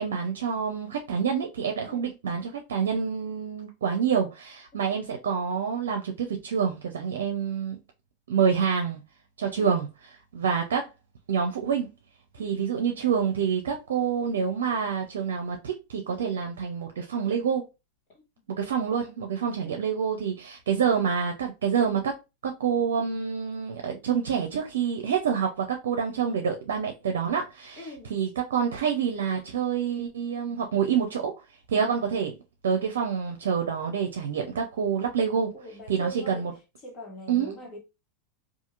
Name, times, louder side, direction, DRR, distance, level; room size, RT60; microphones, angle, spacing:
voice 1, 0.0-7.8 8.3-9.0 9.4-9.9 10.3-10.9 11.3-11.9 12.3-17.7 18.5-31.3 31.7-32.4 32.6-35.5 35.9-36.5 37.3-37.5, right 7 dB, 80° right, 0.5 m, -27 dB
voice 2, 27.8-28.2 35.5-36.5 36.8-37.8, right 2 dB, 45° left, 1.4 m, -42 dB
2.8 x 2.5 x 2.4 m
hypercardioid pair, 100°, 0 cm